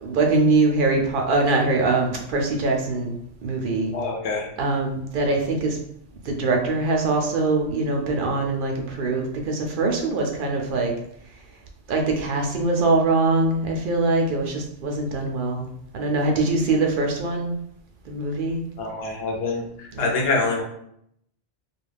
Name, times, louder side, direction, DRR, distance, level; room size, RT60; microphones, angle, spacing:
voice 1, 0.0-3.1 3.4-3.9 4.6-5.8 6.3-10.9 11.9-15.7 15.9-17.5 18.1-18.6 19.9-20.3, right 3 dB, 55° right, 1 dB, 0.6 m, -23 dB
voice 2, 3.9-4.5 18.8-20.6, left 3 dB, 60° left, 0 dB, 0.9 m, -25 dB
2.4 x 2.3 x 3.3 m, 0.72 s
omnidirectional pair, 1.2 m